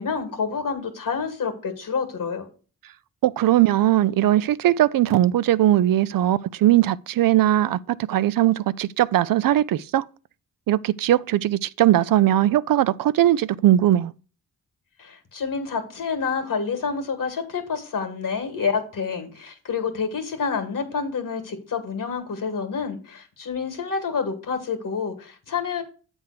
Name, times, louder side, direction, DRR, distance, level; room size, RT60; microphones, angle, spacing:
voice 1, 0.0-2.5 15.0-25.8, left 5 dB, 60° left, 2.0 m, -28 dB
voice 2, 3.2-10.0 10.7-14.1, right 13 dB, 70° right, 0.5 m, -19 dB
7.8 x 3.6 x 6.6 m
cardioid pair, 70°, 36 cm